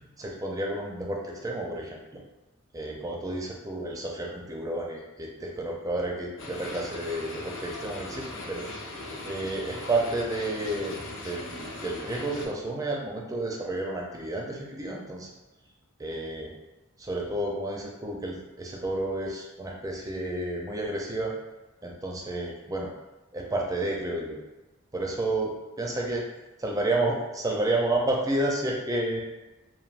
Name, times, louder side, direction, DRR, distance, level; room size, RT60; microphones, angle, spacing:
voice 1, 0.2-2.2 2.7-8.7 9.2-11.0 11.2-15.3 16.0-16.5 17.0-21.3 21.8-22.9 23.3-24.4 24.9-25.5 25.8-26.2 26.6-29.2, right 2 dB, 15° right, -1 dB, 0.4 m, -31 dB
sound 1, 6.4-12.5, left 2 dB, 60° left, 0.5 m, -39 dB
3.2 x 2.2 x 2.4 m, 1.1 s
head